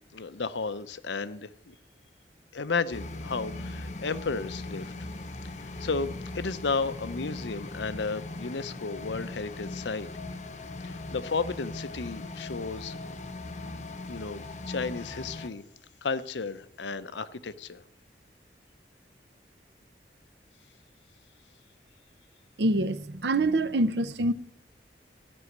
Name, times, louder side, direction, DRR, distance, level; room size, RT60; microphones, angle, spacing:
voice 1, 0.1-1.7 2.5-4.9 5.6-10.1 10.8-13.0 14.1-15.6 16.0-17.8, left 4 dB, 85° left, 0.7 m, -33 dB
sound 1, 2.9-15.5, left 2 dB, 40° left, 0.8 m, -39 dB
voice 2, 22.6-24.3, right 2 dB, 75° right, 0.7 m, -25 dB
14.5 x 6.3 x 9.4 m
head